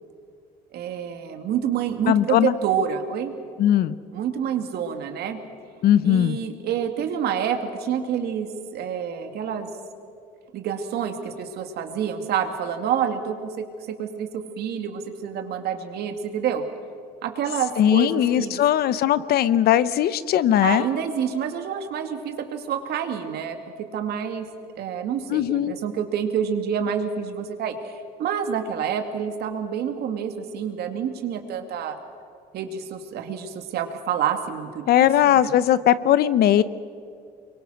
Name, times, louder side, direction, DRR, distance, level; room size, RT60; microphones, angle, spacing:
voice 1, 0.7-3.3 4.1-5.4 6.0-9.7 10.5-16.6 17.2-18.6 20.6-24.5 24.8-32.0 32.5-35.5, right 8 dB, 70° right, 6 dB, 2.4 m, -28 dB
voice 2, 2.1-2.5 3.6-4.0 5.8-6.4 17.8-20.8 25.3-25.7 34.9-36.6, left 11 dB, 65° left, 15 dB, 0.9 m, -19 dB
24.0 x 23.0 x 6.4 m, 2.4 s
cardioid pair, 110°, 17 cm